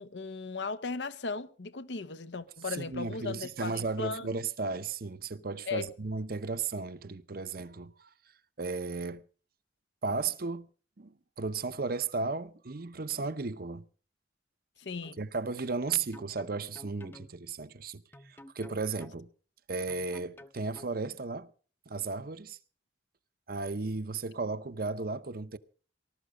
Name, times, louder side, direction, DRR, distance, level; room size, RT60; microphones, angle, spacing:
voice 1, 0.0-4.3 5.7-5.9 14.8-15.2, left 4 dB, 80° left, 0.9 m, -37 dB
voice 2, 2.6-8.1 8.6-9.2 10.0-10.7 11.0-13.8 15.2-19.3 19.7-21.5 21.9-22.6 23.5-25.6, right 4 dB, 55° right, 0.8 m, -35 dB
sound 1, 15.0-15.2 15.9-17.3 18.1-19.2 19.9-20.9, left 1 dB, 10° left, 0.7 m, -52 dB
20.0 x 12.5 x 5.0 m
head